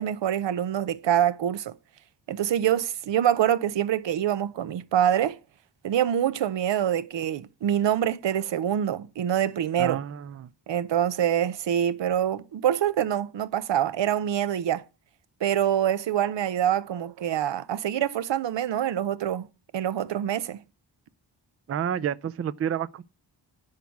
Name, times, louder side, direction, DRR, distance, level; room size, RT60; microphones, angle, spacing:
voice 1, 0.0-1.7 2.3-5.4 5.8-10.0 10.7-14.8 15.4-19.5 19.7-20.6, right 10 dB, 85° right, 0.7 m, -25 dB
voice 2, 9.8-10.5 21.7-23.0, right 9 dB, 35° right, 0.4 m, -30 dB
10.5 x 4.7 x 7.0 m
wide cardioid pair, 125°, 42 cm